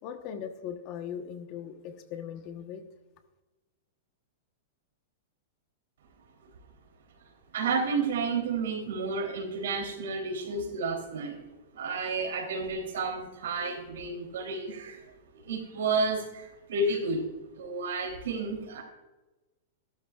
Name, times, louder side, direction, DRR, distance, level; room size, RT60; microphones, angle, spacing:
voice 1, 0.0-2.8, left 8 dB, 40° left, 7 dB, 1.1 m, -39 dB
voice 2, 7.5-11.4 11.7-15.0 15.4-17.2 17.5-18.8, right 3 dB, 85° right, 3 dB, 3.2 m, -31 dB
15.0 x 12.5 x 2.4 m, 1.1 s
supercardioid pair, 150°, 0 cm